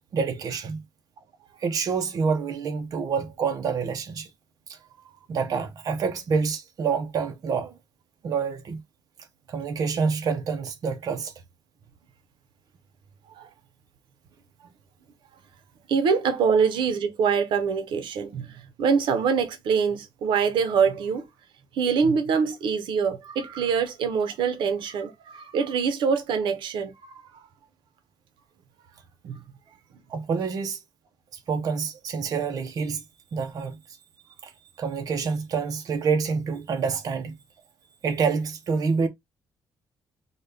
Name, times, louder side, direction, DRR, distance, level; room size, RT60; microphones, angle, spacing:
voice 1, 0.1-0.8 1.6-4.3 4.7-4.8 5.3-7.8 8.2-8.8 9.5-11.3 30.1-30.8 31.3-33.0 33.3-33.8 34.4-34.5 34.8-37.3 38.0-39.1, right 5 dB, 50° right, 0.7 m, -27 dB
voice 2, 15.9-21.3 21.7-27.4 29.2-29.4, right 6 dB, 85° right, 0.7 m, -24 dB
4.0 x 2.2 x 3.3 m
cardioid pair, 155°, 8 cm